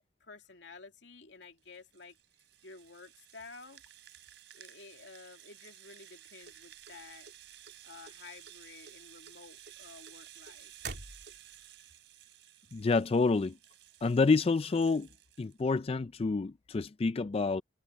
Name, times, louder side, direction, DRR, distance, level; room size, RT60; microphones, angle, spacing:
voice 1, 0.2-2.2 2.6-3.8 4.5-7.3 7.8-10.7, left 4 dB, 75° left, 2.3 m, -52 dB
Rattle (instrument), 1.4-15.6, right 12 dB, 80° right, 3.3 m, -55 dB
sound 1, 6.4-7.7 8.0-8.6 8.9-11.7, right 4 dB, 60° right, 3.2 m, -46 dB
voice 2, 12.7-13.5 14.0-15.1 15.4-17.6, left 4 dB, 35° left, 0.4 m, -28 dB
head